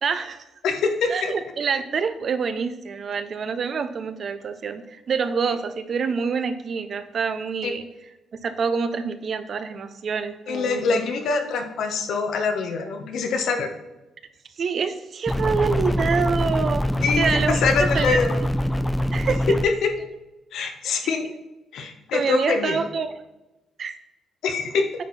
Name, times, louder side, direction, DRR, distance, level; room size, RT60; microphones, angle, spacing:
voice 1, 0.0-0.5 1.1-7.9 8.4-11.1 14.6-16.8 17.2-17.7 17.9-18.2 19.1-19.6 22.1-23.1 23.8-23.9, right 5 dB, 55° right, 10 dB, 0.7 m, -26 dB
voice 2, 0.6-1.3 7.6-7.7 10.5-13.7 17.0-18.4 19.6-19.9 20.5-21.3 21.7-22.8 24.4-24.8, left 4 dB, 75° left, 5 dB, 1.2 m, -24 dB
sound 1, 15.3-19.7, equal, 5° left, 0.5 m, -24 dB
9.1 x 4.4 x 4.2 m, 1.0 s
cardioid pair, 90°, 0 cm